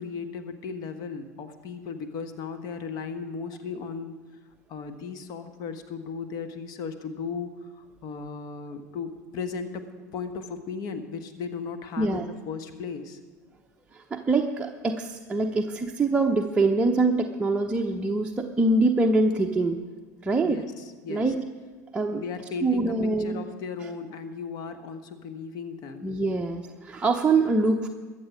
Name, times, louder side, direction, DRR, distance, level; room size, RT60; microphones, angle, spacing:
voice 1, 0.0-4.2 4.7-9.8 10.1-13.2 20.4-21.2 22.1-26.1, left 5 dB, 45° left, 8 dB, 1.3 m, -36 dB
voice 2, 13.9-19.8 20.2-20.6 21.1-21.4 21.9-22.2 22.6-23.4 26.0-27.9, right 3 dB, 10° right, 1 dB, 0.8 m, -24 dB
22.0 x 7.4 x 5.1 m, 1.4 s
figure-of-eight pair, 75°, 10 cm